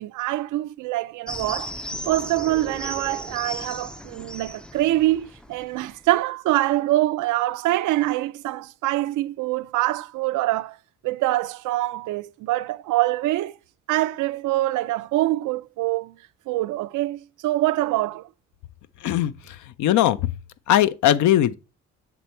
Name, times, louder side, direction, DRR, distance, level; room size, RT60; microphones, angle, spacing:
voice 1, 0.0-1.7 2.1-10.8 11.0-13.5 13.9-16.2 16.5-18.3, right 16 dB, 80° right, 0.5 m, -24 dB
sound 1, 1.3-6.1, equal, 5° left, 0.3 m, -36 dB
voice 2, 19.0-20.3 20.7-21.6, left 12 dB, 75° left, 0.5 m, -20 dB
7.1 x 3.4 x 4.3 m
cardioid pair, 90°, 30 cm